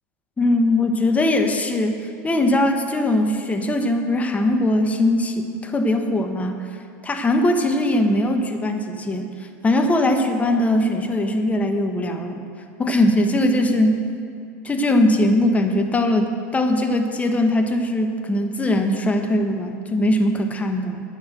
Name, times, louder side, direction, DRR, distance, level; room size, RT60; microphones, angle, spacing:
voice 1, 0.4-2.0 2.2-6.6 7.0-9.3 9.6-12.4 12.8-14.0 14.6-21.0, left 1 dB, 15° left, 5 dB, 1.1 m, -20 dB
9.5 x 7.2 x 7.8 m, 2.4 s
hypercardioid pair, 100°, 8 cm